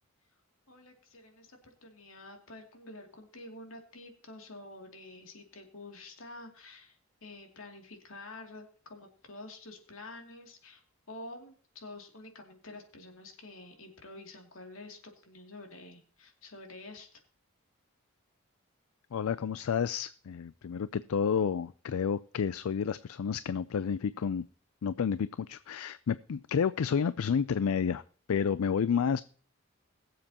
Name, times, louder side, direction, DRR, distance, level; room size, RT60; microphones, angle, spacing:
voice 1, 0.7-17.2, left 2 dB, 70° left, 3 dB, 2.6 m, -49 dB
voice 2, 19.1-24.5 24.8-28.0 28.3-29.2, left 7 dB, 85° left, 16 dB, 0.4 m, -30 dB
21.5 x 7.6 x 2.9 m, 0.44 s
head